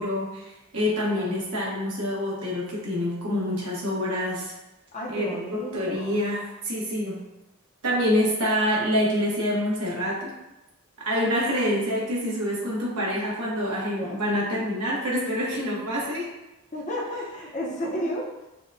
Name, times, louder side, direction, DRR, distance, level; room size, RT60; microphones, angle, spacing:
voice 1, 0.0-4.5 5.1-7.2 7.8-10.3 11.0-16.3, equal, 85° right, -5 dB, 1.3 m, -26 dB
voice 2, 4.9-6.2 14.0-14.2 16.7-18.5, equal, 35° left, -3 dB, 0.7 m, -33 dB
5.9 x 2.2 x 2.6 m, 0.99 s
head